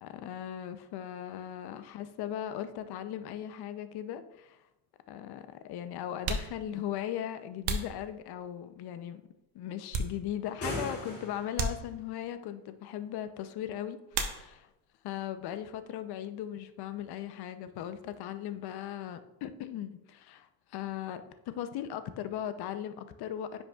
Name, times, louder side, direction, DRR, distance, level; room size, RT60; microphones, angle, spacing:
voice 1, 0.0-4.6 5.1-9.2 9.5-14.7 15.0-23.6, left 10 dB, 65° left, 11 dB, 0.6 m, -38 dB
sound 1, 4.3-4.4 5.4-5.5 6.1-8.7 9.3-10.6 10.9-11.1 11.5-12.3 14.1-14.9 15.2-15.8 16.1-18.3, right 3 dB, 60° right, 1.0 m, -38 dB
sound 2, 10.4-11.7, left 1 dB, 30° left, 2.5 m, -38 dB
9.8 x 5.4 x 2.3 m, 0.94 s
cardioid pair, 110°, 42 cm